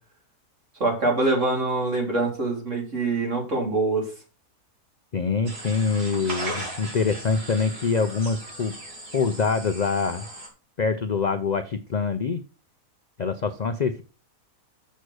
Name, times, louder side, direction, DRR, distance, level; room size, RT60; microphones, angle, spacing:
voice 1, 0.8-4.1, right 2 dB, 50° right, -1 dB, 3.6 m, -24 dB
voice 2, 5.1-8.7 9.1-10.3 10.8-12.4 13.2-14.0, left 5 dB, 55° left, 9 dB, 0.4 m, -25 dB
sound 1, 5.5-10.5, right 1 dB, 85° right, 3.5 m, -37 dB
6.7 x 6.5 x 6.3 m, 0.35 s
omnidirectional pair, 1.6 m